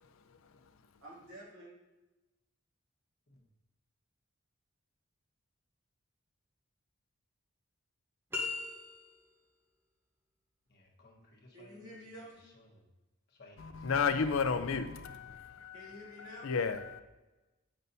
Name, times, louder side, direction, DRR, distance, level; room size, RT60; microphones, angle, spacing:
voice 1, 1.0-1.7 11.5-12.6 15.7-16.5, equal, 80° right, -5 dB, 2.4 m, -50 dB
sound 1, 8.3-9.4, left 4 dB, 10° right, 0.8 m, -38 dB
voice 2, 10.7-11.9 12.4-12.8 13.3-14.3, left 2 dB, 50° left, -2 dB, 1.2 m, -60 dB
voice 3, 13.6-17.0, left 5 dB, 65° left, 9 dB, 0.5 m, -33 dB
9.0 x 5.4 x 2.7 m, 1.1 s
head